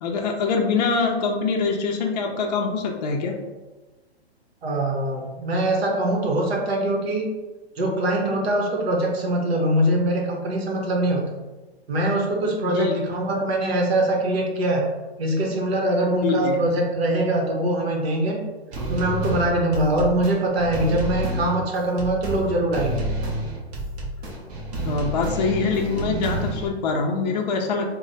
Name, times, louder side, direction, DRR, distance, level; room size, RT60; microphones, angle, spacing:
voice 1, 0.0-3.3 12.6-13.0 16.2-16.6 24.8-27.9, left 4 dB, 40° left, 1 dB, 0.5 m, -24 dB
voice 2, 4.6-7.3 7.8-11.3 11.9-14.8 15.2-18.4 18.9-23.0, right 1 dB, 70° right, 0 dB, 1.0 m, -23 dB
sound 1, 18.7-26.7, right 1 dB, 35° right, 0.8 m, -29 dB
3.1 x 2.1 x 3.9 m, 1.2 s
hypercardioid pair, 150°, 32 cm